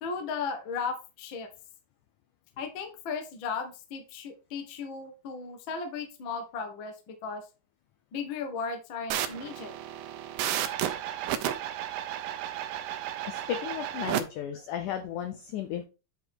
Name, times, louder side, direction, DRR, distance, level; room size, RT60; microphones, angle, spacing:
voice 1, 0.0-1.5 2.6-7.4 8.1-9.7, left 5 dB, 70° left, 6 dB, 1.1 m, -36 dB
sound 1, 9.1-14.2, right 11 dB, 75° right, 2.1 m, -33 dB
voice 2, 13.3-15.9, left 10 dB, 85° left, 7 dB, 1.7 m, -34 dB
8.1 x 4.6 x 4.3 m, 0.30 s
omnidirectional pair, 4.5 m